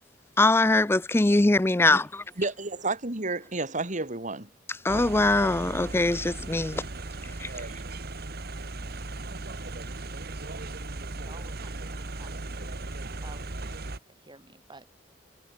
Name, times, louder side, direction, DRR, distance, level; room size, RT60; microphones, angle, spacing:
voice 1, 0.4-2.2 4.8-6.8 7.4-7.5, left 2 dB, 15° left, 0.5 m, -22 dB
voice 2, 2.4-4.5 7.5-7.8, right 2 dB, 40° right, 3.5 m, -31 dB
sound 1, 4.9-14.0, right 2 dB, 60° right, 1.8 m, -37 dB
voice 3, 11.1-12.4 13.2-13.4 13.9-14.9, right 3 dB, 25° right, 4.1 m, -51 dB
head